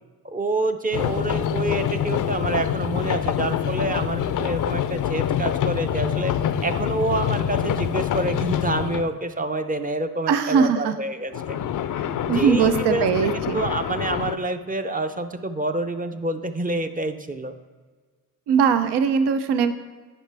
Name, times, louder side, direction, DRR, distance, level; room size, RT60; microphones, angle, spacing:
voice 1, 0.2-6.3 6.6-11.6 12.3-13.3 13.5-17.5, right 2 dB, 20° right, 8 dB, 0.5 m, -27 dB
sound 1, 0.9-9.1 11.3-14.4, left 9 dB, 55° left, 0.4 m, -26 dB
voice 2, 10.3-10.9 12.3-13.6 18.5-19.7, right 6 dB, 85° right, 10 dB, 0.6 m, -20 dB
9.9 x 5.0 x 3.3 m, 1.4 s
cardioid pair, 65°, 39 cm